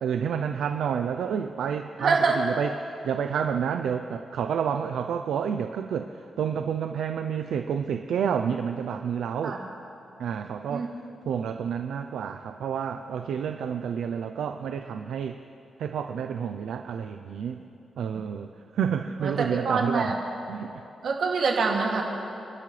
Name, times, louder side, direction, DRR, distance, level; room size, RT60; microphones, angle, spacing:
voice 1, 0.0-9.6 10.2-10.9 11.2-15.4 15.8-17.6 18.0-18.5 18.7-20.2 20.5-20.8, right 7 dB, 85° right, 6 dB, 0.5 m, -29 dB
voice 2, 2.0-2.4 9.4-9.6 10.7-10.9 19.2-19.3 19.6-20.1 21.0-22.0, right 4 dB, 65° right, -1 dB, 2.5 m, -24 dB
30.0 x 12.0 x 3.3 m, 2.9 s
cardioid pair, 110°, 0 cm